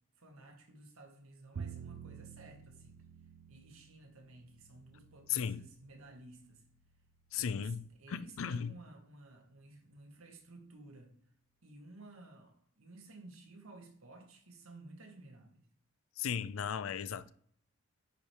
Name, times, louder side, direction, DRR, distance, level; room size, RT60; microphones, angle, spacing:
voice 1, 0.2-3.0 3.5-6.6 7.3-11.2 11.6-15.7, right 2 dB, 85° right, 1.4 m, -55 dB
Bowed string instrument, 1.5-7.7, right 6 dB, 60° right, 0.4 m, -51 dB
voice 2, 5.3-5.6 7.3-7.8 8.1-8.7 16.2-17.3, left 7 dB, 70° left, 0.4 m, -36 dB
9.8 x 3.3 x 4.4 m
head